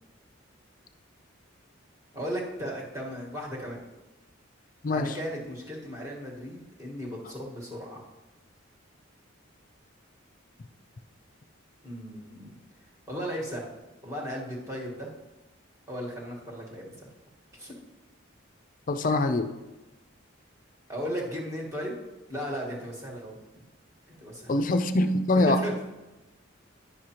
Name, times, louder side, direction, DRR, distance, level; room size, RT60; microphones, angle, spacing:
voice 1, 2.1-3.8 4.9-8.0 11.8-12.5 13.1-13.7 14.0-15.1 15.9-17.1 17.5-17.7 20.9-21.9 22.3-23.4 24.1-24.7 25.3-25.7, equal, 15° right, -3 dB, 1.5 m, -36 dB
voice 2, 4.8-5.2 18.9-19.5 24.5-25.6, left 2 dB, 40° left, 9 dB, 0.4 m, -24 dB
10.5 x 6.5 x 2.9 m, 1.1 s
head